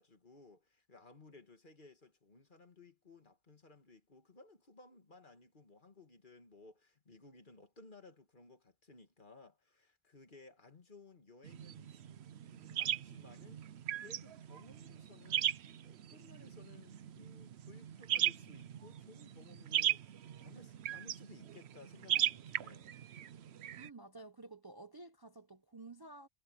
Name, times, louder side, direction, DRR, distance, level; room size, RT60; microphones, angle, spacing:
voice 1, 0.0-12.0 12.5-13.6 13.9-15.5 15.8-22.9, left 3 dB, 50° left, 2.1 m, -59 dB
sound 1, 11.4-23.9, right 10 dB, 80° right, 1.0 m, -38 dB
voice 2, 23.8-26.3, right 2 dB, 25° right, 0.7 m, -52 dB
omnidirectional pair, 1.1 m